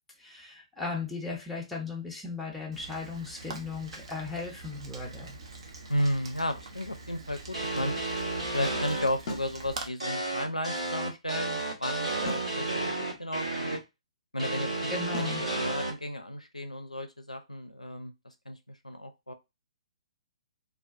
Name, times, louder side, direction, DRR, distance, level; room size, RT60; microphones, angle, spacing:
voice 1, 0.2-5.4 14.9-15.4, left 4 dB, 5° left, -3 dB, 0.6 m, -37 dB
Rain, 2.7-9.9, right 3 dB, 50° right, 0.5 m, -44 dB
voice 2, 5.9-7.9 8.5-12.7 13.0-13.8 14.3-18.1 18.5-19.3, equal, 90° left, 6 dB, 0.4 m, -33 dB
sound 1, 7.5-9.0 10.0-13.8 14.4-15.9, right 2 dB, 80° right, 1.1 m, -32 dB
sound 2, 9.3-9.6 12.3-12.6 15.1-15.4, left 1 dB, 45° left, 0.6 m, -37 dB
2.4 x 2.2 x 2.4 m, 0.24 s
figure-of-eight pair, 125°, 4 cm